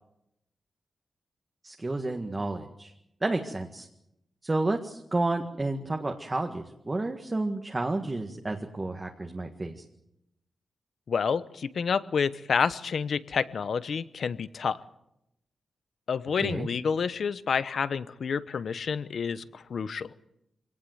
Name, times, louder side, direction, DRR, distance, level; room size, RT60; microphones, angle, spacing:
voice 1, 1.6-2.9 3.2-3.9 4.4-9.8 16.4-16.7, right 2 dB, 20° right, 3 dB, 1.7 m, -31 dB
voice 2, 11.1-14.8 16.1-20.1, left 6 dB, 60° left, 15 dB, 0.9 m, -29 dB
26.0 x 18.5 x 8.0 m, 0.83 s
wide cardioid pair, 145°, 0 cm